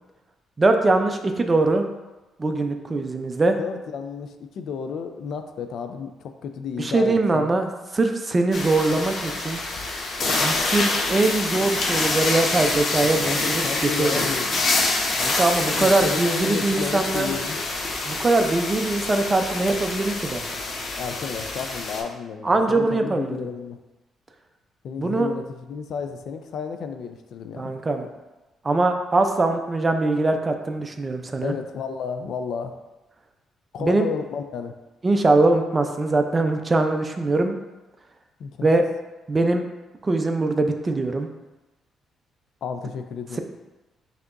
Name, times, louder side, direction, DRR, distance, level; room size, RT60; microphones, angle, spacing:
voice 1, 0.6-1.8 2.4-3.6 6.8-7.7 7.9-9.6 10.4-13.6 14.0-14.1 15.2-17.3 18.1-20.4 22.4-23.4 25.0-25.3 27.6-28.1 28.6-31.5 33.8-34.1 35.0-37.6 38.6-38.8 39.3-39.6 40.0-41.3, right 2 dB, 25° right, 5 dB, 0.4 m, -22 dB
voice 2, 3.6-7.5 13.1-14.5 15.8-17.6 21.0-23.8 24.8-27.7 31.4-32.7 33.7-34.8 38.4-38.7 42.6-43.4, left 6 dB, 70° left, 7 dB, 0.4 m, -32 dB
sound 1, 8.5-22.0, left 2 dB, 55° left, 0.8 m, -26 dB
5.8 x 2.8 x 2.5 m, 1.1 s
cardioid pair, 90°, 0 cm